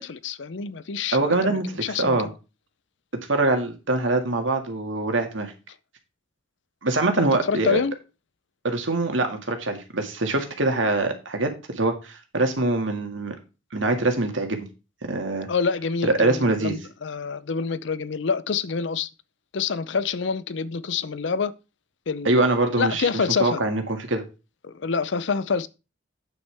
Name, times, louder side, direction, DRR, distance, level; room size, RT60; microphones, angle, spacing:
voice 1, 0.0-2.2 7.2-7.9 15.5-19.1 19.5-21.5 22.1-22.4 22.8-23.6 24.6-25.7, left 5 dB, 70° left, 0.6 m, -27 dB
voice 2, 1.1-1.7 2.0-2.3 3.3-5.5 6.8-7.8 8.6-13.4 13.7-14.7 15.1-15.5 16.0-16.8 22.2-23.1 23.4-24.2, right 2 dB, 85° right, 2.0 m, -23 dB
8.6 x 8.2 x 3.4 m
head